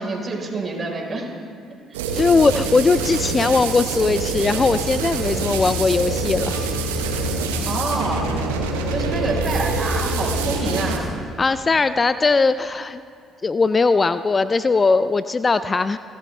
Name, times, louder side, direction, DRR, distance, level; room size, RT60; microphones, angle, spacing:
voice 1, 0.0-1.3 1.9-2.0 7.6-8.3 8.9-11.2, right 3 dB, 35° right, 0 dB, 4.1 m, -27 dB
sound 1, 1.9-11.0, right 5 dB, 85° right, 1.3 m, -26 dB
voice 2, 2.1-6.6 11.4-13.0 13.4-16.0, left 4 dB, 30° left, 13 dB, 0.4 m, -19 dB
sound 2, 5.2-10.9, left 6 dB, 60° left, 1.5 m, -31 dB
30.0 x 11.0 x 3.3 m, 2.6 s
hypercardioid pair, 50°, 0 cm